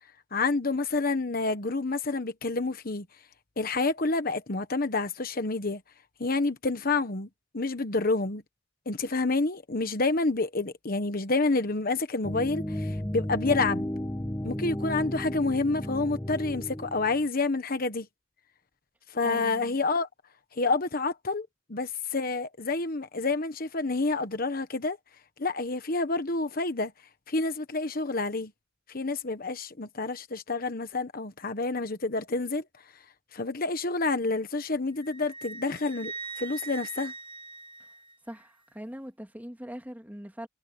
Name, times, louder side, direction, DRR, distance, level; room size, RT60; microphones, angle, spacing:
voice 1, 0.3-3.0 3.6-5.8 6.2-7.3 7.5-8.4 8.9-13.9 14.4-18.1 19.1-20.1 20.6-25.0 25.4-26.9 27.3-28.5 28.9-32.6 33.3-37.1, left 3 dB, 50° left, 1.2 m, -28 dB
sound 1, 12.2-17.2, left 1 dB, 15° left, 1.6 m, -33 dB
voice 2, 19.2-19.8 38.3-40.5, equal, 10° right, 2.9 m, -41 dB
Wind instrument woodwind instrument, 35.0-38.5, right 4 dB, 25° right, 1.1 m, -42 dB
head